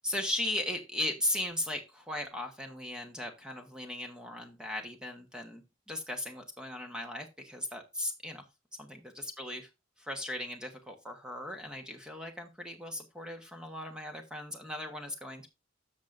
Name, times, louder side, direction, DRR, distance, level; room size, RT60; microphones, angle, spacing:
voice 1, 0.0-5.6 5.9-8.4 8.8-9.6 10.0-15.5, left 1 dB, 5° right, 4 dB, 1.0 m, -37 dB
13.5 x 6.6 x 2.5 m, 0.24 s
head